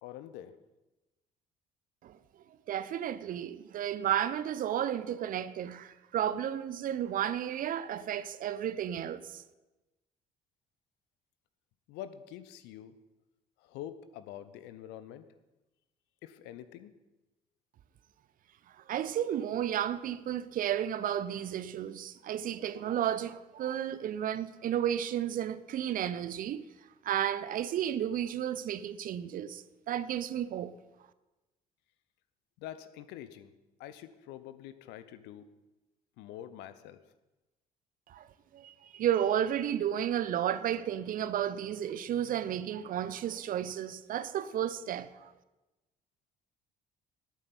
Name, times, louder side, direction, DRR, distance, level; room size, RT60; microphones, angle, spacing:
voice 1, 0.0-0.5 11.9-13.0 13.6-15.3 16.2-16.9 32.6-33.5 33.8-35.5 36.2-37.0, left 11 dB, 60° left, 0.8 m, -46 dB
voice 2, 2.7-9.4 18.8-26.6 27.0-30.7 38.1-38.3 38.5-45.3, right 10 dB, 45° right, 0.6 m, -32 dB
18.0 x 8.8 x 4.1 m
figure-of-eight pair, 50°, 20 cm